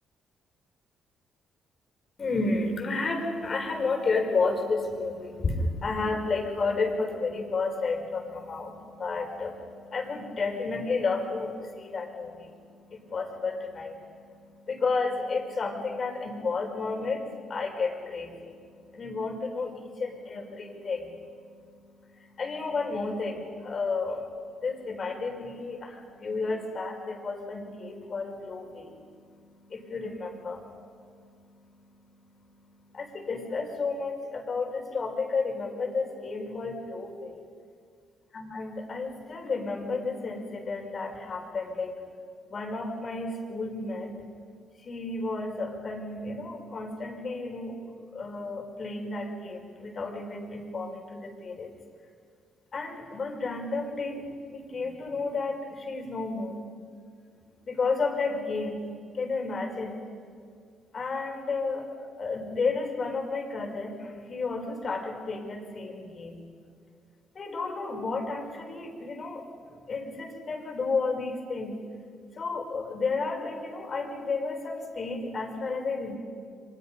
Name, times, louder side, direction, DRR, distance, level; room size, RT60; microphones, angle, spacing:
voice 1, 2.2-37.4 38.3-42.0 42.5-44.1 44.8-51.7 52.7-54.2 54.5-56.6 57.7-60.0 60.9-66.4 67.4-71.8 72.3-76.2, left 3 dB, 45° left, 3 dB, 5.0 m, -32 dB
29.5 x 24.0 x 5.5 m, 2.1 s
cardioid pair, 90°, 0 cm